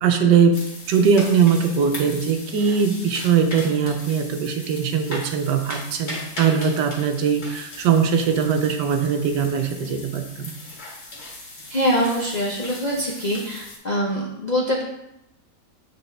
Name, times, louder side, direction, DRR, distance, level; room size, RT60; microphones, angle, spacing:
voice 1, 0.0-0.6 0.9-10.5, right 6 dB, 80° right, 6 dB, 1.3 m, -20 dB
sound 1, 0.5-13.8, left 2 dB, 60° left, 2.2 m, -38 dB
voice 2, 11.7-14.8, equal, 40° left, -4 dB, 0.6 m, -24 dB
7.8 x 4.0 x 3.3 m, 0.87 s
omnidirectional pair, 1.8 m